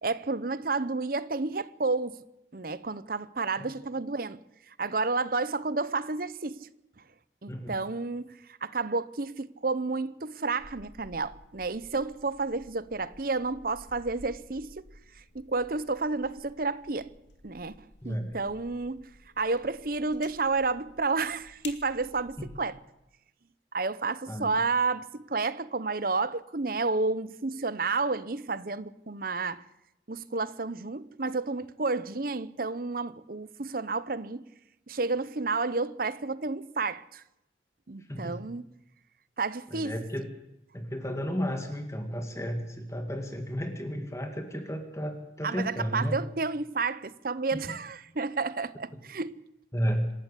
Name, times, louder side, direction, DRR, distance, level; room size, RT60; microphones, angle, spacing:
voice 1, 0.0-2.2 2.5-4.4 4.7-6.7 7.0-7.1 7.4-14.8 15.1-17.1 17.4-19.1 19.4-22.8 23.7-29.6 30.1-34.4 34.9-37.2 37.9-38.6 39.4-40.0 45.4-49.4, right 3 dB, 50° right, 0.8 m, -31 dB
sound 1, 10.6-22.7, left 3 dB, 75° left, 2.3 m, -53 dB
voice 2, 18.0-18.4 24.3-24.5 38.0-38.4 39.7-40.3 40.7-46.2 47.7-47.8 49.7-50.1, equal, 15° left, 2.0 m, -33 dB
26.5 x 13.0 x 8.4 m
head